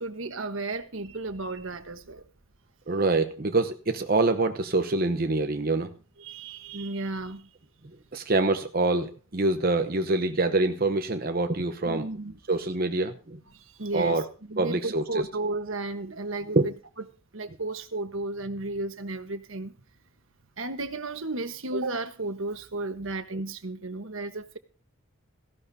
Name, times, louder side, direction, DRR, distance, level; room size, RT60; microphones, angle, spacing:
voice 1, 0.0-2.2 6.2-7.5 11.8-12.4 13.5-14.2 14.5-16.7 17.3-19.7 20.6-24.6, right 2 dB, 75° right, 1.3 m, -33 dB
voice 2, 2.9-5.9 8.1-12.1 12.5-13.4 13.9-14.3 14.6-15.2 16.5-16.7, right 2 dB, 45° right, 0.9 m, -25 dB
17.5 x 15.5 x 2.8 m
head